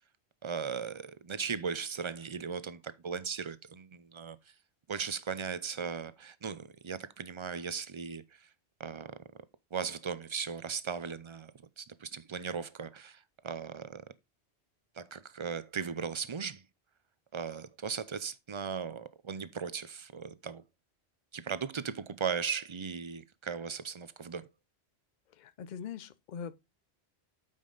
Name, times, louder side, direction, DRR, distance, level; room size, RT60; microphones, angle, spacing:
voice 1, 0.4-4.4 4.9-8.5 8.8-9.2 9.7-11.5 11.8-14.0 15.0-16.6 17.3-20.6 21.3-24.5, right 6 dB, 40° right, 0.5 m, -37 dB
voice 2, 25.3-26.6, left 7 dB, 50° left, 0.6 m, -42 dB
8.9 x 5.3 x 3.9 m
omnidirectional pair, 1.1 m